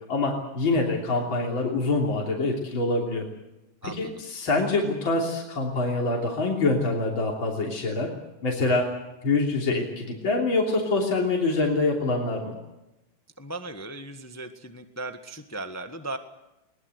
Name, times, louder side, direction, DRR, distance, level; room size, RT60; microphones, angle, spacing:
voice 1, 0.1-3.2 3.8-8.1 8.4-8.9 9.2-12.5, left 3 dB, 65° left, 0 dB, 4.0 m, -25 dB
voice 2, 3.8-4.2 13.4-16.2, right 2 dB, 10° left, 8 dB, 1.1 m, -37 dB
22.0 x 20.5 x 8.1 m, 0.94 s
omnidirectional pair, 2.3 m